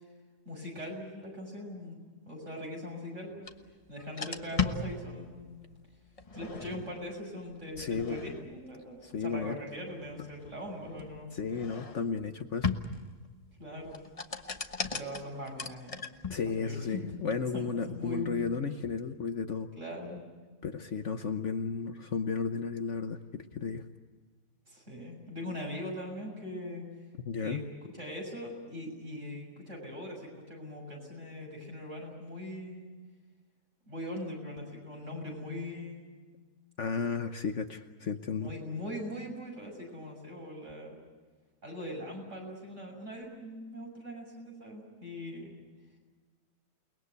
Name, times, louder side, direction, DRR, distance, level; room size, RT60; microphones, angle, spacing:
voice 1, 0.5-2.0 2.3-3.4 3.9-5.6 6.3-11.3 13.6-13.9 14.9-16.0 16.6-17.1 17.5-18.5 19.8-20.2 24.7-26.9 27.4-27.6 27.9-32.9 33.9-36.1 38.3-41.0 41.6-45.6, left 1 dB, 50° right, 0 dB, 7.3 m, -41 dB
sound 1, 3.4-3.5 4.0-5.5 6.2-7.0 7.7-8.6 9.8-12.2 12.6-13.3 13.8-16.5, left 4 dB, 25° left, 1.1 m, -37 dB
voice 2, 7.8-8.2 9.0-9.5 11.3-12.7 16.3-19.7 20.6-23.8 27.2-27.6 36.8-38.5, left 5 dB, 55° left, 7 dB, 1.2 m, -33 dB
29.5 x 21.0 x 8.2 m, 1.4 s
omnidirectional pair, 1.7 m